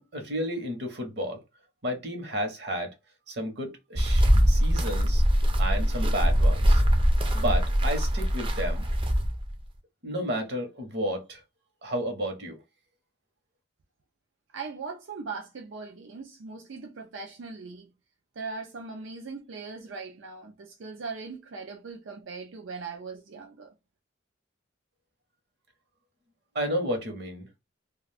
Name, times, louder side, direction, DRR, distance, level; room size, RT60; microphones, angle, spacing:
voice 1, 0.0-1.4 1.8-2.9 3.3-5.2 5.6-6.8 7.3-8.9 10.0-11.4 11.8-12.6 26.5-27.5, equal, 60° right, 0.9 m, -32 dB
sound 1, 4.0-9.5, equal, 25° right, 0.4 m, -22 dB
voice 2, 14.5-17.9 18.4-23.7, right 4 dB, 85° right, 0.5 m, -39 dB
2.4 x 2.3 x 3.3 m
head